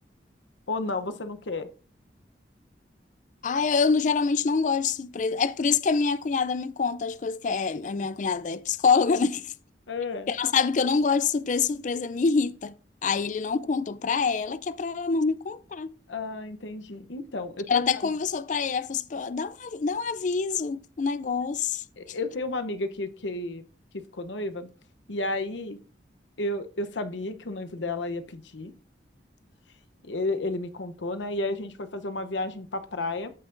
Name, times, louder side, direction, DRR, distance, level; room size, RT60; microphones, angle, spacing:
voice 1, 0.7-1.7 9.9-10.3 16.1-18.1 22.0-23.6 23.9-24.7 25.1-25.8 26.4-28.7 30.0-33.3, left 2 dB, 85° left, 0.8 m, -32 dB
voice 2, 3.4-9.5 10.3-12.7 13.0-15.9 17.7-21.8, left 5 dB, 45° left, 0.4 m, -26 dB
14.5 x 5.7 x 2.6 m
head